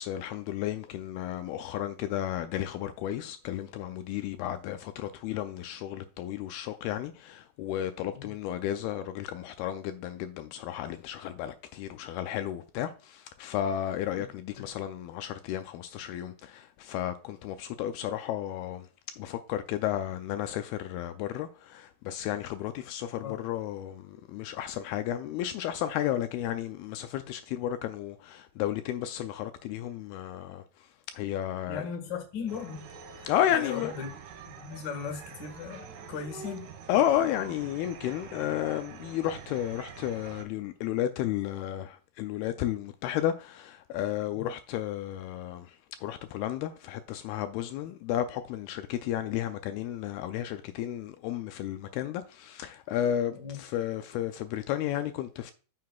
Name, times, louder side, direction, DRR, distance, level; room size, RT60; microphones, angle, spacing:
voice 1, 0.0-18.8 19.2-30.6 31.1-31.8 33.3-33.9 36.9-45.7 46.0-55.5, left 11 dB, 80° left, 2.3 m, -32 dB
voice 2, 31.7-32.9 33.1-34.1 34.6-36.7 44.3-44.5 53.3-53.6, left 6 dB, 60° left, 1.2 m, -38 dB
sound 1, 32.5-40.4, right 6 dB, 65° right, 2.5 m, -46 dB
9.3 x 6.6 x 2.3 m
omnidirectional pair, 4.7 m